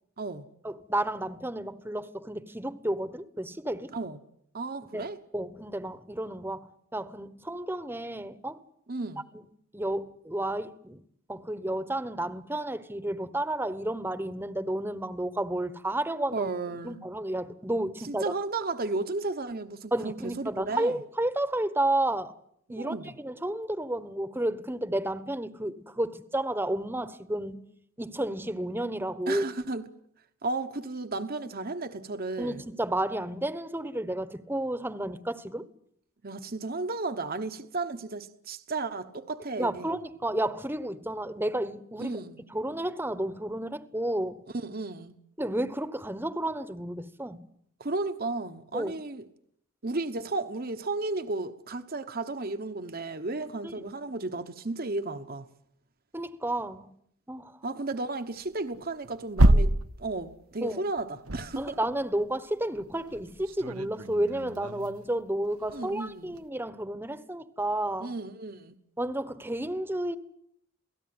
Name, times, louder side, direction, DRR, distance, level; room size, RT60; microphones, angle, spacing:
voice 1, 0.6-3.9 4.9-5.1 5.3-8.6 9.7-11.0 11.3-16.5 16.8-18.3 19.9-22.3 22.7-27.6 28.0-29.4 32.4-35.7 39.6-42.1 42.5-44.4 45.4-47.4 48.7-48.9 53.6-53.9 56.1-56.9 57.3-57.5 60.6-60.8 61.6-68.1 69.0-70.2, right 1 dB, 10° right, 1.2 m, -31 dB
voice 2, 4.5-5.2 8.9-9.2 16.3-17.0 18.0-20.9 22.8-23.1 29.3-29.8 30.4-32.6 36.2-39.9 42.0-42.4 44.5-45.1 47.8-49.3 49.8-55.5 57.6-59.7 60.0-61.8 65.7-66.4 68.0-68.8, right 3 dB, 45° right, 1.1 m, -34 dB
sound 1, 58.3-60.7 61.0-62.3 62.7-65.1 65.5-66.4, right 1 dB, 85° right, 1.3 m, -27 dB
28.0 x 18.0 x 9.7 m
head